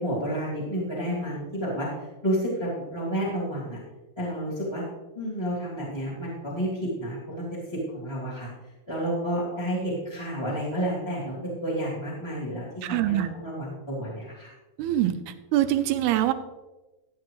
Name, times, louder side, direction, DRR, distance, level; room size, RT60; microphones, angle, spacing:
voice 1, 0.0-1.9 2.2-3.8 4.2-4.8 5.1-7.6 7.9-8.5 8.9-14.5, equal, 10° left, -7 dB, 2.2 m, -30 dB
voice 2, 12.8-13.3 14.8-15.1 15.5-16.3, right 13 dB, 85° right, 10 dB, 2.7 m, -23 dB
13.5 x 10.0 x 3.1 m, 1.1 s
omnidirectional pair, 4.6 m